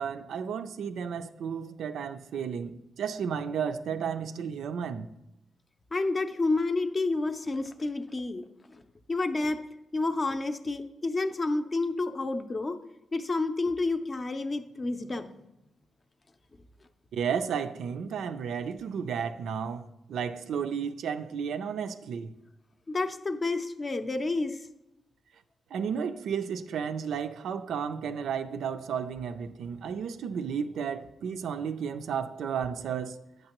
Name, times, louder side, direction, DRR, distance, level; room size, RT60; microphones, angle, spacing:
voice 1, 0.0-5.1 17.1-22.3 25.7-33.2, right 7 dB, 85° right, 0.4 m, -33 dB
voice 2, 5.9-8.5 8.7-8.8 9.1-9.6 9.9-12.8 13.1-15.3 22.9-24.7, left 3 dB, 30° left, 0.5 m, -29 dB
9.1 x 6.6 x 3.0 m
cardioid pair, 125°, 0 cm